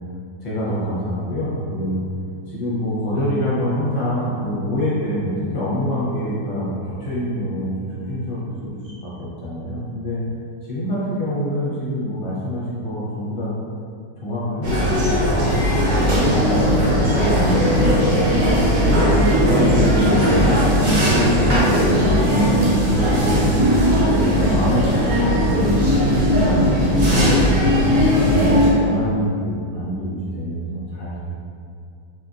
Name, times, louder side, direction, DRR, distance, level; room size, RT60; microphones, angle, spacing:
voice 1, 0.4-2.0 2.5-10.2 10.6-13.5 14.2-15.2 15.6-15.8 16.1-18.1 18.7-20.4 20.7-22.8 23.4-23.7 24.0-26.6 27.1-31.3, equal, 45° left, -8 dB, 0.8 m, -26 dB
sound 1, 14.6-28.7, equal, 60° right, 1.2 m, -17 dB
2.6 x 2.5 x 2.4 m, 2.4 s
omnidirectional pair, 1.6 m